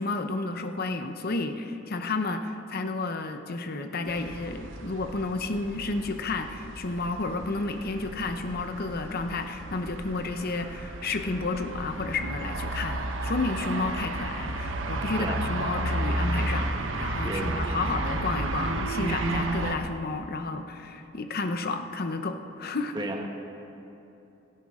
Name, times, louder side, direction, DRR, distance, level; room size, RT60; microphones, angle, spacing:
voice 1, 0.0-22.9, left 3 dB, 50° left, 7 dB, 0.8 m, -31 dB
sound 1, 4.1-19.8, right 2 dB, 75° right, 1.0 m, -32 dB
voice 2, 17.2-17.6 22.9-23.3, right 1 dB, 25° right, 2 dB, 1.2 m, -33 dB
17.0 x 15.0 x 3.7 m, 3.0 s
head